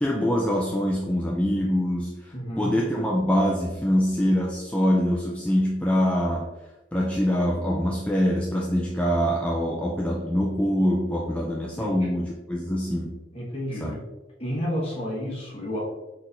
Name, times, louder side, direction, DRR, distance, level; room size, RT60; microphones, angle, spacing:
voice 1, 0.0-6.5 6.9-13.2 13.8-13.9, equal, 5° left, -2 dB, 0.4 m, -24 dB
voice 2, 2.3-2.8 11.8-12.1 13.3-14.0 14.4-15.8, equal, 35° left, -5 dB, 1.4 m, -31 dB
4.1 x 4.0 x 2.6 m, 1.1 s
head